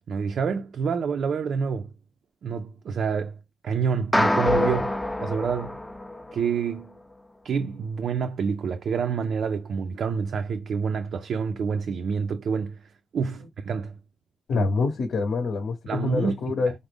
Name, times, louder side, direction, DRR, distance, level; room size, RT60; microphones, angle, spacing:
voice 1, 0.1-1.9 2.4-3.4 3.6-4.9 5.2-5.8 6.3-6.9 7.4-14.0 14.5-14.7 15.9-16.6, right 6 dB, 65° right, 0.3 m, -28 dB
sound 1, 4.1-6.6, left 1 dB, 5° left, 0.4 m, -25 dB
voice 2, 14.5-16.7, left 4 dB, 80° left, 0.9 m, -26 dB
4.9 x 2.0 x 3.3 m
wide cardioid pair, 175°, 0 cm